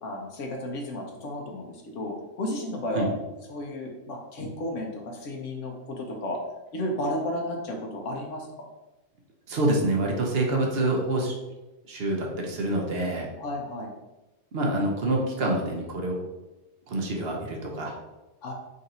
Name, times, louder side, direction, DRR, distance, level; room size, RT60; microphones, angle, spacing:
voice 1, 0.0-3.1 3.5-6.4 6.7-8.5 13.4-13.9 18.4-18.5, left 1 dB, 85° left, 0 dB, 1.2 m, -33 dB
voice 2, 9.5-11.3 11.9-13.3 14.5-16.2 16.9-17.9, right 1 dB, 60° right, 0 dB, 1.0 m, -26 dB
3.9 x 2.6 x 4.1 m, 1.0 s
omnidirectional pair, 1.2 m